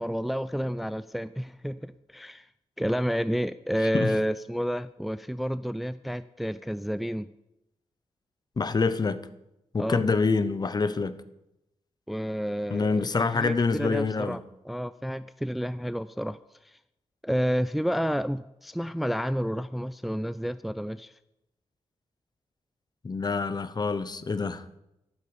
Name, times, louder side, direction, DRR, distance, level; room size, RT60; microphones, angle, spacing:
voice 1, 0.0-2.5 2.8-7.3 9.8-10.1 12.1-16.4 16.6-16.8 17.2-21.1, equal, ahead, 14 dB, 0.4 m, -30 dB
voice 2, 8.6-9.2 9.7-11.2 12.7-14.4 23.0-24.6, left 4 dB, 40° left, 13 dB, 1.0 m, -26 dB
13.5 x 12.0 x 5.2 m, 0.88 s
cardioid pair, 80°, 11 cm